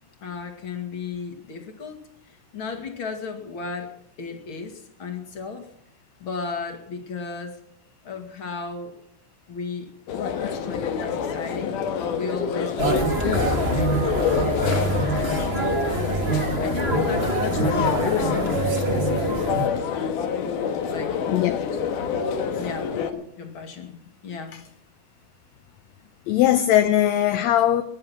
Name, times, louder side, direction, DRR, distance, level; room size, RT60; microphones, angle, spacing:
voice 1, 0.2-2.0 2.5-5.7 6.2-7.6 8.0-9.0 9.5-9.9 10.3-11.8 12.1-13.3 13.7-20.2 20.9-21.2 22.6-24.6, left 4 dB, 45° left, 2.9 m, -35 dB
sound 1, 10.1-23.1, left 7 dB, 90° left, 3.0 m, -27 dB
sound 2, 12.8-19.7, right 2 dB, 25° right, 1.4 m, -25 dB
voice 2, 21.3-21.6 24.5-24.6 26.3-27.8, left 12 dB, 75° left, 1.8 m, -20 dB
21.0 x 10.5 x 6.0 m
omnidirectional pair, 3.6 m